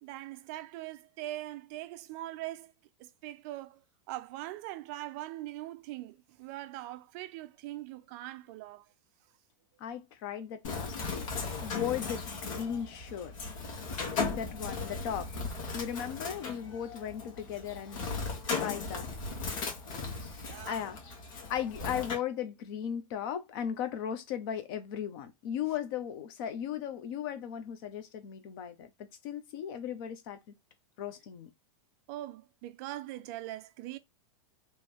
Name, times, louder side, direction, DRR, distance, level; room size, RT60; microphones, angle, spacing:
voice 1, 0.0-2.7 3.0-3.8 4.1-8.9 20.5-20.8 32.1-34.0, right 15 dB, 30° right, 0.4 m, -42 dB
voice 2, 9.8-11.3 11.6-13.3 14.3-15.3 15.7-18.0 18.5-19.1 20.4-21.0 21.5-28.9 29.2-30.4 31.0-31.5, left 9 dB, 40° left, 0.9 m, -37 dB
Bird, 10.6-22.1, left 4 dB, 65° left, 1.9 m, -37 dB
3.3 x 3.2 x 4.4 m
supercardioid pair, 170°, 17 cm